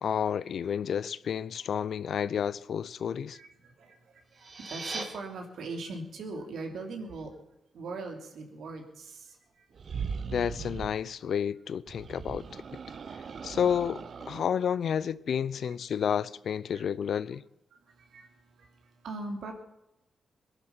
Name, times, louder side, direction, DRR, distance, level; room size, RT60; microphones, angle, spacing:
voice 1, 0.0-3.4 10.3-12.6 13.4-17.4, left 8 dB, 70° left, 0.5 m, -30 dB
voice 2, 3.3-7.3 7.7-9.7 16.7-16.8 17.7-19.5, right 3 dB, 80° right, 3.2 m, -41 dB
sound 1, 4.2-5.0, right 3 dB, 40° right, 2.7 m, -38 dB
sound 2, 9.7-11.0 11.9-14.5, right 6 dB, 55° right, 0.7 m, -39 dB
22.0 x 10.5 x 5.8 m
cardioid pair, 100°, 0 cm